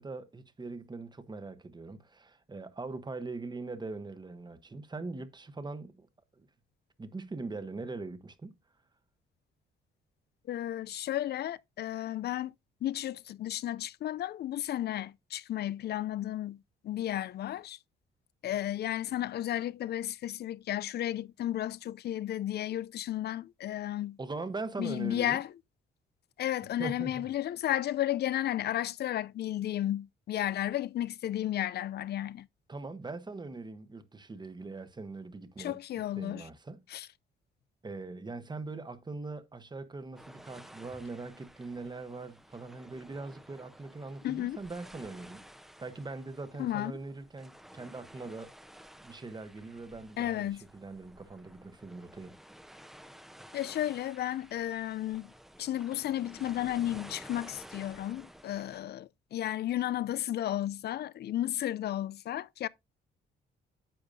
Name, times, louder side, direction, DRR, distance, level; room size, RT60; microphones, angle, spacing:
voice 1, 0.0-6.1 6.4-6.5 7.0-8.6 24.2-25.4 26.8-27.3 32.7-35.8 36.2-36.8 37.8-45.5 45.8-48.5 49.0-52.4, right 3 dB, 20° right, 1.1 m, -41 dB
voice 2, 10.5-12.5 12.8-17.8 18.4-24.2 24.8-25.5 26.4-32.5 35.6-36.5 36.9-37.1 44.2-44.6 46.6-46.9 50.2-50.6 53.5-55.3 55.6-62.7, left 12 dB, 55° left, 0.4 m, -33 dB
sound 1, 40.1-58.8, equal, ahead, 0.8 m, -53 dB
10.0 x 7.1 x 2.6 m
cardioid pair, 90°, 20 cm